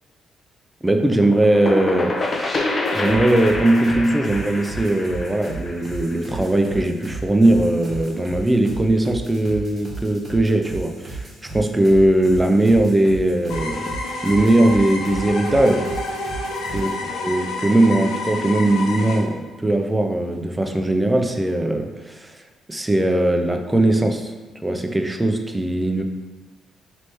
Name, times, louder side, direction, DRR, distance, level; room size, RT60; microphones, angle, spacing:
voice 1, 0.8-13.9 14.2-15.9 16.7-24.3 24.6-26.0, right 1 dB, 10° right, 4 dB, 0.5 m, -19 dB
sound 1, 1.2-6.8, left 2 dB, 35° left, 0.6 m, -27 dB
sound 2, 2.8-16.9, right 3 dB, 30° right, 1.4 m, -35 dB
sound 3, 13.5-19.2, left 2 dB, 85° left, 0.7 m, -29 dB
3.2 x 3.0 x 4.4 m, 1.3 s
cardioid pair, 90°, 0 cm